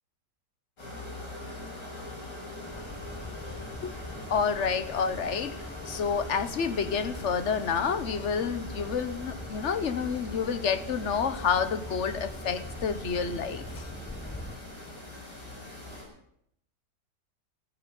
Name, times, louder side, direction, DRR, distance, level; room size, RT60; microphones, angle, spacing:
sound 1, 0.8-16.0, left 2 dB, 90° left, 7.8 m, -42 dB
sound 2, 2.7-14.6, left 1 dB, 10° left, 0.4 m, -43 dB
voice 1, 4.3-13.8, left 6 dB, 50° left, 12 dB, 1.2 m, -29 dB
16.0 x 10.0 x 9.2 m, 0.74 s
omnidirectional pair, 1.8 m